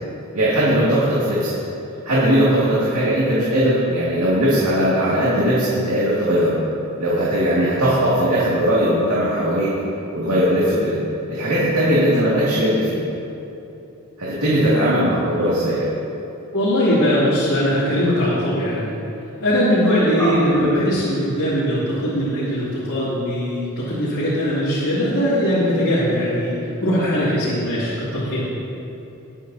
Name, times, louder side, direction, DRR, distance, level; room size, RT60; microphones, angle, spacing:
voice 1, 0.3-1.5 2.1-6.6 7.0-9.8 10.1-11.0 11.3-13.0 14.2-15.9 20.2-20.3 20.6-20.8, equal, 85° right, -8 dB, 2.2 m, -19 dB
voice 2, 16.5-18.9 19.4-26.5 26.8-28.4, equal, 80° left, -11 dB, 2.8 m, -20 dB
20.0 x 8.6 x 2.8 m, 2.9 s
head